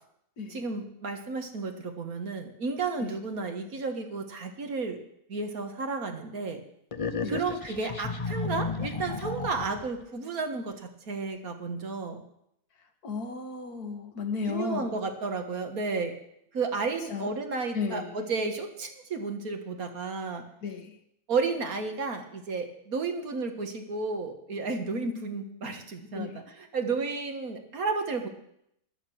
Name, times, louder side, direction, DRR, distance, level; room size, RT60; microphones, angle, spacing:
voice 1, 0.5-5.0 5.3-6.6 7.3-12.2 14.5-16.2 16.5-20.4 21.3-28.3, right 4 dB, 70° right, 5 dB, 1.9 m, -32 dB
sound 1, 6.9-10.0, left 4 dB, 60° left, 0.3 m, -33 dB
voice 2, 13.0-15.0 17.1-17.3 17.7-18.2 20.6-20.9 26.2-26.4, left 5 dB, 80° left, 5 dB, 1.9 m, -34 dB
13.5 x 11.0 x 6.3 m, 0.74 s
omnidirectional pair, 1.6 m